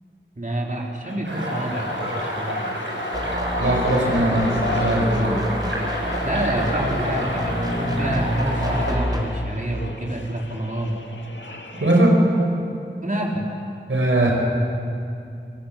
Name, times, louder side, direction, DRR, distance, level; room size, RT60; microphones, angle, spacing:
voice 1, 0.4-2.7 6.2-11.0 13.0-13.6, right 1 dB, 40° right, -1 dB, 4.0 m, -28 dB
sound 1, 1.0-12.1, left 2 dB, 70° left, 1.9 m, -33 dB
sound 2, 1.2-9.0, equal, 70° right, 7.2 m, -29 dB
sound 3, 3.1-9.2, equal, 20° right, 4.0 m, -28 dB
voice 2, 3.6-5.4 11.7-12.2 13.9-14.3, right 1 dB, 90° right, -1 dB, 5.1 m, -20 dB
28.5 x 18.0 x 8.5 m, 2.5 s
wide cardioid pair, 45°, 20 cm